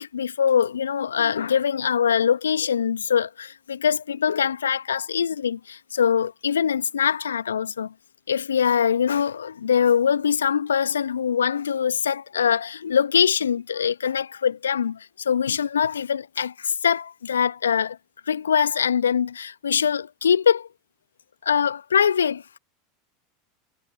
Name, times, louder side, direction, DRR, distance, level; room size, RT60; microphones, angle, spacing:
voice 1, 0.0-7.9 8.3-18.0 18.3-20.7 21.4-22.6, left 7 dB, 75° left, 1.5 m, -23 dB
figure-of-eight pair, 80°, 0 cm